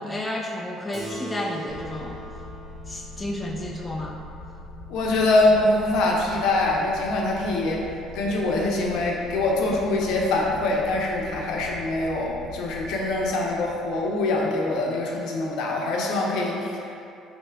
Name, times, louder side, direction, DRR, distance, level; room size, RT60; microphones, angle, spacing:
voice 1, 0.0-2.2 2.9-4.2, left 1 dB, 15° left, 0 dB, 0.3 m, -31 dB
Keyboard (musical), 0.9-5.8, right 1 dB, 10° right, 1.2 m, -41 dB
sound 1, 1.7-15.0, left 2 dB, 60° right, 0.7 m, -42 dB
voice 2, 4.9-7.8 8.1-17.0, left 2 dB, 75° left, -2 dB, 0.6 m, -24 dB
3.2 x 2.6 x 4.5 m, 2.7 s
cardioid pair, 105°, 0 cm